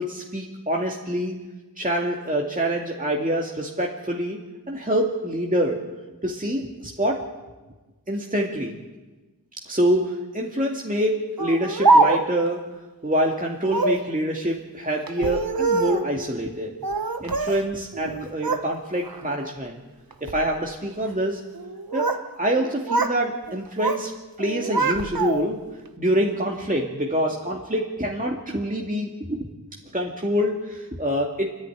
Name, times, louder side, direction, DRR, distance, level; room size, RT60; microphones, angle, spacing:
voice 1, 0.0-1.4 1.8-4.4 4.7-5.8 6.2-7.2 8.1-8.8 9.6-12.7 13.0-16.7 17.2-19.8 20.2-21.4 21.9-22.1 22.4-24.1 24.4-25.6 26.0-29.5 29.9-31.5, equal, 20° right, -1 dB, 2.2 m, -26 dB
Speech, 11.4-12.5 13.6-14.1 15.1-16.1 16.8-17.6 17.9-18.7 19.0-19.4 20.1-20.4 21.5-22.3 22.5-23.2 23.5-24.1 24.4-25.6, right 3 dB, 65° right, 1.3 m, -23 dB
29.5 x 10.5 x 9.9 m, 1.2 s
wide cardioid pair, 60°, 39 cm